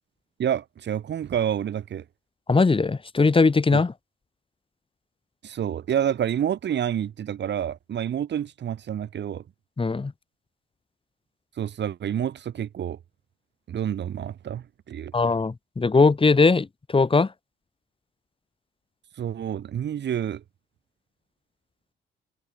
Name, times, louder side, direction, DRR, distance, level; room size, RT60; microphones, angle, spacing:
voice 1, 0.4-2.0 3.7-3.8 5.4-9.4 11.6-13.0 13.7-15.1 19.2-20.4, right 9 dB, 60° right, 3.7 m, -28 dB
voice 2, 2.5-3.9 9.8-10.1 15.1-17.3, left 4 dB, 25° left, 5.1 m, -20 dB
cardioid pair, 90°, 20 cm